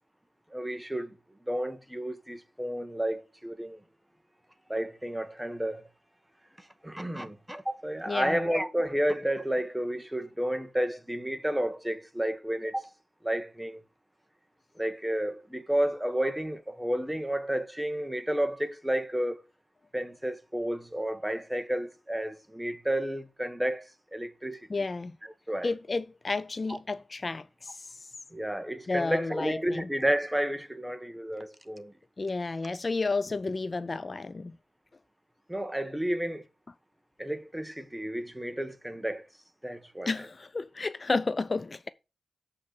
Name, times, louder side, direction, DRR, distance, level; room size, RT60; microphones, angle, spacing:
voice 1, 0.5-1.1 1.5-3.8 4.7-5.9 6.8-12.9 13.2-13.8 14.8-19.4 19.9-24.9 25.5-25.7 28.3-31.9 35.5-36.4 37.2-39.2 39.6-40.1, right 1 dB, 5° right, 1.2 m, -31 dB
voice 2, 8.1-8.4 24.7-25.2 25.6-28.0 28.9-29.9 32.2-34.6 40.1-41.9, left 3 dB, 40° left, 0.4 m, -31 dB
7.5 x 5.9 x 6.4 m
wide cardioid pair, 90°, 0 cm